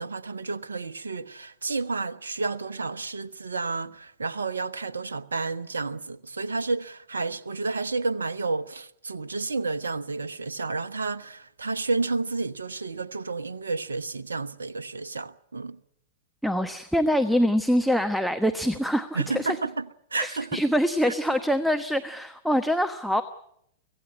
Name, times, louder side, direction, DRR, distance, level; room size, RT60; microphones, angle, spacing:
voice 1, 0.0-15.8 19.1-19.9 20.1-20.6, right 3 dB, 70° right, 0.9 m, -31 dB
voice 2, 16.4-19.6 20.2-23.2, equal, ahead, 1.0 m, -24 dB
24.5 x 16.5 x 9.8 m
figure-of-eight pair, 100°, 0 cm